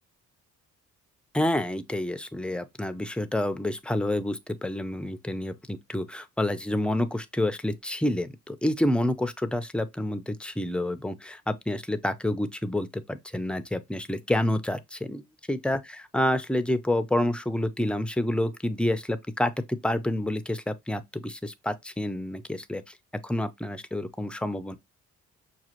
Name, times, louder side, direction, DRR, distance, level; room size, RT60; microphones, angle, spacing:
voice 1, 1.3-22.9 23.2-24.8, left 1 dB, 5° left, 0.5 m, -28 dB
6.0 x 2.4 x 2.9 m
cardioid pair, 90°, 30 cm